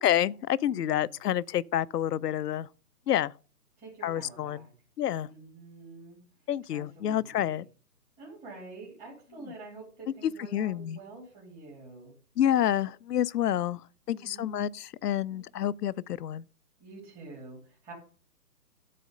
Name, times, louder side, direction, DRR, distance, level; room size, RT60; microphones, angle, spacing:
voice 1, 0.0-2.7 3.1-3.3 4.0-4.6 5.0-5.3 6.5-7.7 10.5-11.0 12.4-13.8 14.1-16.4, left 11 dB, 80° left, 0.5 m, -28 dB
voice 2, 0.7-1.1 3.8-4.7 5.2-6.2 6.7-7.6 8.2-12.1 14.1-14.7 15.3-15.4 16.8-17.9, right 3 dB, 15° right, 3.0 m, -47 dB
12.5 x 4.2 x 5.2 m
hypercardioid pair, 155°, 48 cm